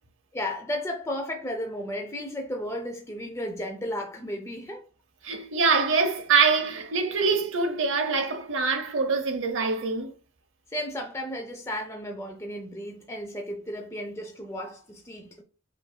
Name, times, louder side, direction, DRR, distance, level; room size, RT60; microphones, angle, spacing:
voice 1, 0.3-4.9 10.7-15.4, left 1 dB, 15° left, 0.5 m, -34 dB
voice 2, 5.2-10.1, right 5 dB, 60° right, 0.8 m, -24 dB
5.3 x 2.5 x 2.2 m
head